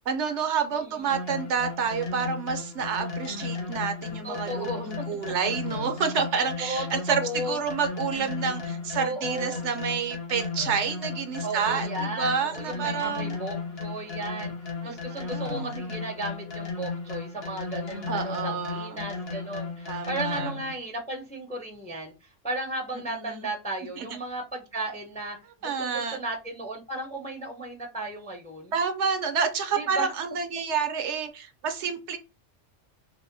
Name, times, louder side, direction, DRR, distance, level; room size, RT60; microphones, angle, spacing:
voice 1, 0.1-13.4 14.8-15.8 18.1-19.0 19.9-20.5 23.1-23.5 24.0-24.2 25.6-26.2 28.7-32.2, right 6 dB, 70° right, 7 dB, 0.9 m, -29 dB
voice 2, 0.7-1.1 4.2-5.0 6.6-7.6 9.0-9.6 11.4-14.5 14.8-22.1 22.4-28.7 29.8-30.1, right 2 dB, 10° left, 1 dB, 0.5 m, -35 dB
sound 1, 1.1-20.7, left 4 dB, 55° left, 1.1 m, -35 dB
4.1 x 2.1 x 2.6 m, 0.28 s
omnidirectional pair, 1.3 m